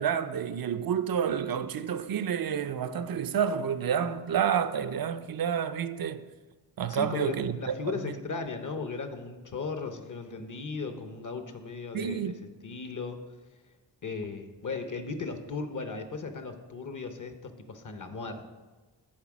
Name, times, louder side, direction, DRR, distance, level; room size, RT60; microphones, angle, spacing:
voice 1, 0.0-6.2 6.8-7.5 8.1-8.2 11.9-12.4, right 8 dB, 60° right, 0.5 m, -29 dB
voice 2, 6.9-12.4 12.6-13.2 14.0-18.4, left 4 dB, 50° left, 0.8 m, -36 dB
7.3 x 4.6 x 6.1 m
wide cardioid pair, 85°, 41 cm